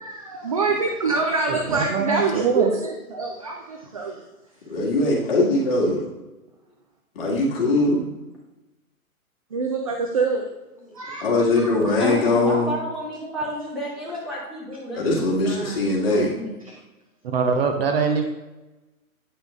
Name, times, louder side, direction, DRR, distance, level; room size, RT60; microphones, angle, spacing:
voice 1, 0.0-4.2 9.5-10.5 10.9-11.2, right 4 dB, 25° right, 1 dB, 0.4 m, -25 dB
voice 2, 1.5-2.7 17.2-18.2, right 5 dB, 40° right, 4 dB, 0.8 m, -23 dB
voice 3, 4.7-6.0 7.1-8.1 11.2-12.7 14.9-16.4, left 2 dB, 40° left, -3 dB, 2.0 m, -21 dB
voice 4, 12.0-16.6, equal, ahead, -8 dB, 1.7 m, -31 dB
8.7 x 5.7 x 2.4 m, 1.1 s
figure-of-eight pair, 120°, 43 cm